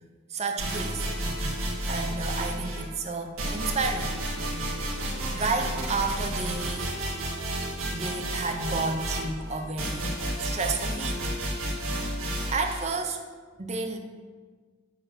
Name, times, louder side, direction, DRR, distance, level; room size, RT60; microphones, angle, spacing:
voice 1, 0.3-1.1 1.8-4.2 5.3-7.0 7.9-11.3 12.1-13.2 13.6-14.0, right 3 dB, 30° right, 5 dB, 0.7 m, -31 dB
sound 1, 0.6-2.9 3.4-12.9, right 1 dB, 90° right, 1.7 m, -31 dB
7.9 x 4.3 x 6.1 m, 1.5 s
head